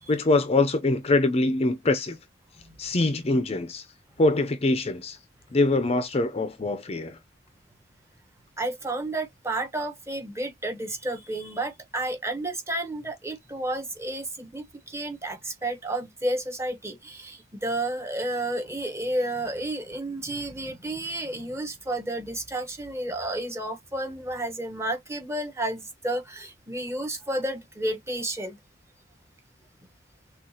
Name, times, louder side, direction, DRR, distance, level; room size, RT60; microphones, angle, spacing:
voice 1, 0.1-2.2 2.8-3.8 4.2-5.2 5.5-7.2, left 2 dB, 35° left, 0.6 m, -24 dB
voice 2, 8.6-28.6, right 1 dB, 15° right, 1.1 m, -31 dB
6.1 x 2.4 x 2.8 m
head